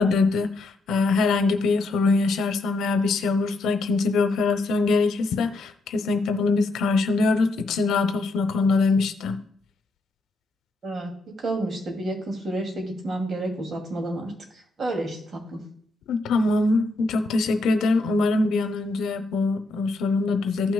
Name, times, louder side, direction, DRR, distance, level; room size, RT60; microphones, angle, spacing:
voice 1, 0.0-9.4 16.1-20.7, left 3 dB, 80° left, 9 dB, 0.8 m, -23 dB
voice 2, 10.8-14.3 14.8-15.6, right 2 dB, 45° right, 1 dB, 2.8 m, -30 dB
15.5 x 6.0 x 2.4 m, 0.62 s
cardioid pair, 90°, 0 cm